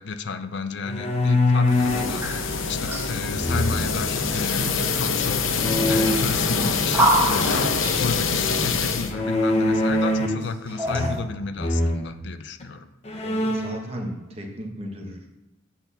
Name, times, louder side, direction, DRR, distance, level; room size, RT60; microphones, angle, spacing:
voice 1, 0.0-12.9, left 4 dB, 60° left, 10 dB, 0.5 m, -33 dB
sound 1, 0.8-2.2 3.3-4.1 5.6-6.2 9.1-10.5 10.8-11.3 11.6-12.0 12.6-12.7 13.0-13.8, left 1 dB, 30° left, 1.0 m, -23 dB
sound 2, 1.7-9.1, left 5 dB, 80° left, 0.8 m, -25 dB
sound 3, 2.1-3.3 4.0-4.6 5.8-8.1 9.6-9.7 10.4-11.2, right 1 dB, 10° right, 1.1 m, -27 dB
voice 2, 13.2-15.3, equal, 30° right, 2 dB, 1.3 m, -35 dB
8.1 x 4.3 x 6.8 m, 0.99 s
head